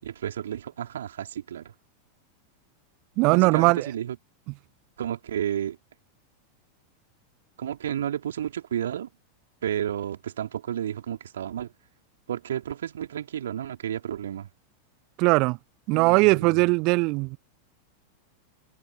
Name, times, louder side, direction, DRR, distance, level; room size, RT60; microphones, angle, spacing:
voice 1, 0.0-1.7 3.3-4.2 5.0-5.8 7.6-9.1 9.6-11.7 12.3-14.5 15.9-16.6, right 10 dB, 65° right, 3.6 m, -32 dB
voice 2, 3.2-3.9 15.2-15.6 15.9-17.4, right 26 dB, 40° right, 1.2 m, -20 dB
figure-of-eight pair, 90°, 0 cm